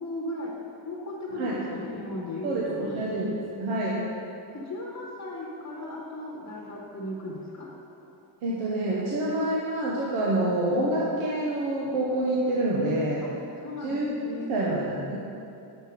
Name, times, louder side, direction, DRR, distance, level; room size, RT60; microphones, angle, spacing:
voice 1, 0.0-0.6 0.8-3.1 4.5-7.7 13.2-13.3 13.6-14.5, left 1 dB, 35° left, -3 dB, 1.0 m, -36 dB
voice 2, 2.4-3.3 3.6-4.1 8.4-13.3 13.8-14.1 14.5-15.2, right 1 dB, 90° right, -4 dB, 1.0 m, -27 dB
6.1 x 5.4 x 4.5 m, 2.7 s
cardioid pair, 125°, 48 cm